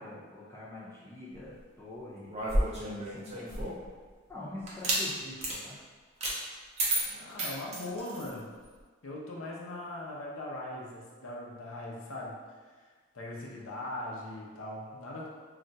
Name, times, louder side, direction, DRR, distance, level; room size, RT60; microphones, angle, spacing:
voice 1, 0.0-2.3 2.8-3.7 4.3-5.8, left 1 dB, 10° left, -8 dB, 0.6 m, -45 dB
sound 1, 2.3-3.9 4.7-5.0 5.4-5.6 6.2-6.4 6.8-8.3, right 1 dB, 30° right, 0.5 m, -31 dB
voice 2, 7.1-8.5 9.0-12.4 12.8-12.9 13.1-15.3, left 1 dB, 85° left, -3 dB, 0.6 m, -40 dB
2.4 x 2.2 x 3.9 m, 1.5 s
head